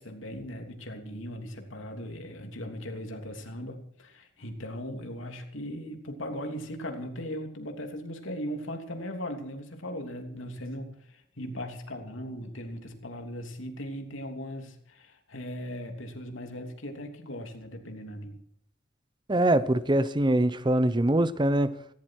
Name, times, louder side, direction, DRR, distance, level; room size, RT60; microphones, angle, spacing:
voice 1, 0.0-18.4, equal, 75° left, 4 dB, 3.1 m, -38 dB
voice 2, 19.3-21.7, right 1 dB, 25° right, 14 dB, 0.7 m, -23 dB
18.0 x 15.5 x 4.7 m, 0.67 s
head